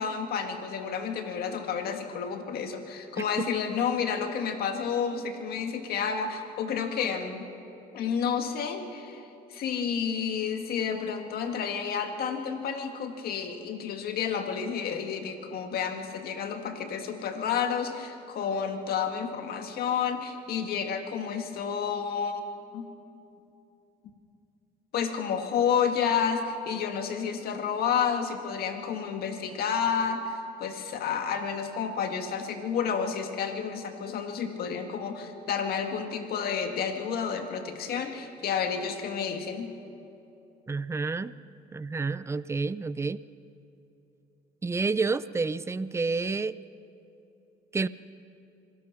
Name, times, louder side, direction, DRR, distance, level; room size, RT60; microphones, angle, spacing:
voice 1, 0.0-7.5 7.9-22.4 22.7-22.9 24.9-39.7, left 7 dB, 65° left, 5 dB, 2.0 m, -30 dB
voice 2, 3.2-3.5 40.7-41.3 41.7-43.2 44.6-46.6 47.7-47.9, right 4 dB, 15° right, 16 dB, 0.5 m, -29 dB
26.0 x 17.5 x 5.8 m, 2.8 s
cardioid pair, 110°, 17 cm